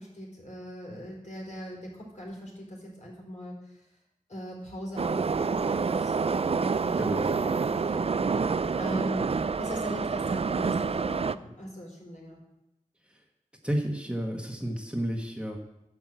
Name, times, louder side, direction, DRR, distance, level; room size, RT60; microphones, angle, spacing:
voice 1, 0.0-3.9 4.3-8.1 8.8-12.4, equal, 55° left, -3 dB, 4.4 m, -40 dB
Subway metro underground, 5.0-11.4, right 5 dB, 45° right, 0.4 m, -27 dB
voice 2, 13.6-15.6, equal, 10° right, 1 dB, 1.4 m, -31 dB
10.5 x 5.9 x 7.6 m, 0.90 s
wide cardioid pair, 55°, 14 cm